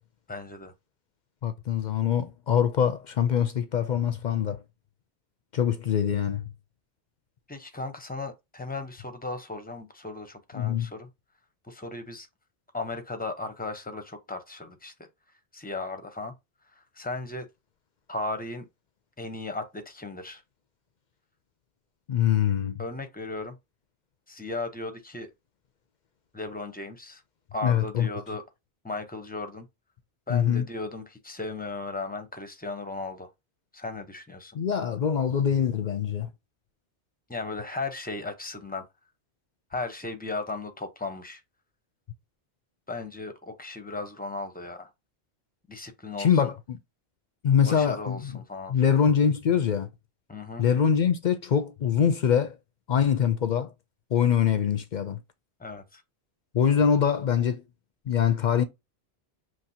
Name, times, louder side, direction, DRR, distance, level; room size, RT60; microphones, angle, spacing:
voice 1, 0.3-0.7 7.5-11.1 11.6-12.3 12.7-15.1 15.5-16.3 16.7-17.5 18.1-18.7 19.2-20.4 22.8-23.6 24.3-25.3 26.3-27.2 27.5-28.4 28.8-29.7 30.3-33.3 33.7-34.6 37.3-38.9 39.7-41.4 42.9-44.9 45.7-46.4 47.7-49.0 50.3-50.6 55.6-56.0, left 3 dB, 10° left, 0.6 m, -36 dB
voice 2, 1.4-4.6 5.5-6.4 10.6-10.9 22.1-22.8 27.6-28.1 30.3-30.6 34.5-36.3 46.2-46.8 47.4-48.3 48.7-49.9 50.6-52.5 52.9-53.7 54.1-55.2 56.5-57.6 58.1-58.6, left 8 dB, 55° left, 0.6 m, -24 dB
5.8 x 3.1 x 2.7 m
omnidirectional pair, 1.1 m